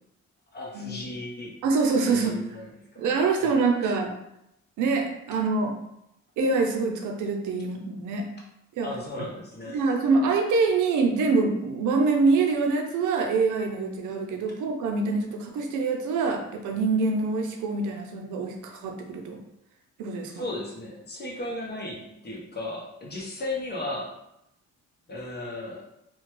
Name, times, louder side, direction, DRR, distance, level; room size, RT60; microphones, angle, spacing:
voice 1, 0.5-1.6 2.2-3.1 3.4-3.6 3.8-3.9 8.8-9.8 20.3-24.2 25.1-25.8, left 2 dB, 35° left, -2 dB, 0.9 m, -35 dB
voice 2, 1.6-2.5 3.0-4.1 4.8-5.8 6.4-8.3 8.7-8.9 9.2-9.3 9.7-19.4 20.0-20.4, right 4 dB, 80° right, 3 dB, 0.6 m, -25 dB
2.9 x 2.3 x 3.0 m, 0.82 s
cardioid pair, 90°, 30 cm